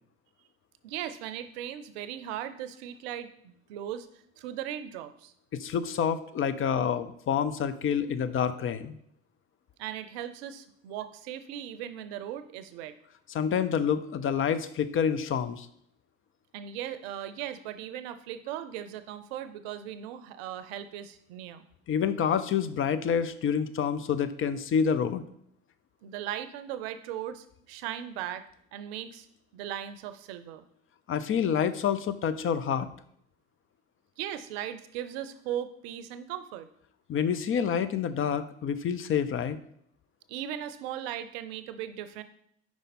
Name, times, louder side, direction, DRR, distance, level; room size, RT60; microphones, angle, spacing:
voice 1, 0.8-5.3 9.8-13.0 16.5-21.7 26.0-28.4 28.7-29.3 29.5-30.6 34.2-36.7 40.3-42.2, right 11 dB, 80° right, 11 dB, 0.5 m, -38 dB
voice 2, 5.5-9.0 13.3-15.7 21.9-25.3 31.1-32.9 37.1-39.6, left 7 dB, 45° left, 12 dB, 0.5 m, -28 dB
5.1 x 4.7 x 4.2 m, 0.68 s
hypercardioid pair, 55°, 31 cm